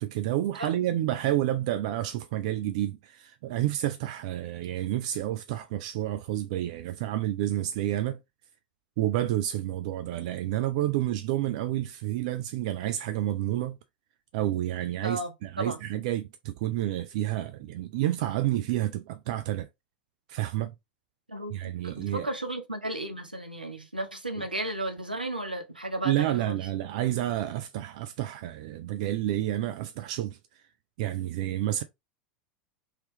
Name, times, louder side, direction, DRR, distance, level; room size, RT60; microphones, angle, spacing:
voice 1, 0.0-8.2 9.0-13.8 14.3-19.7 20.3-20.7 21.5-22.3 26.0-30.4 31.0-31.8, right 13 dB, 50° right, 0.3 m, -29 dB
voice 2, 21.3-26.6, right 1 dB, 85° right, 0.6 m, -34 dB
3.3 x 2.9 x 3.0 m
figure-of-eight pair, 80°, 5 cm